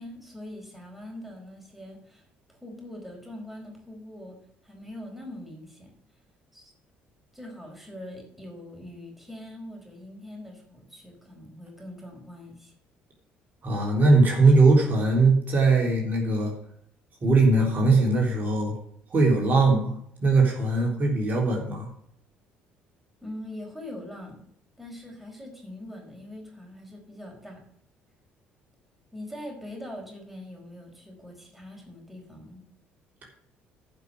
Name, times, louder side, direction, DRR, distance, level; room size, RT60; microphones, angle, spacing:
voice 1, 0.0-2.2 2.5-4.4 4.6-5.9 6.5-6.7 7.3-12.7 23.2-24.4 24.8-27.6 29.1-32.6, left 1 dB, 5° right, 1 dB, 4.6 m, -42 dB
voice 2, 13.6-16.5 17.2-18.7 19.1-19.9 20.2-21.9, right 3 dB, 45° right, -1 dB, 3.6 m, -20 dB
10.5 x 5.8 x 7.4 m, 0.71 s
supercardioid pair, 65°, 4 cm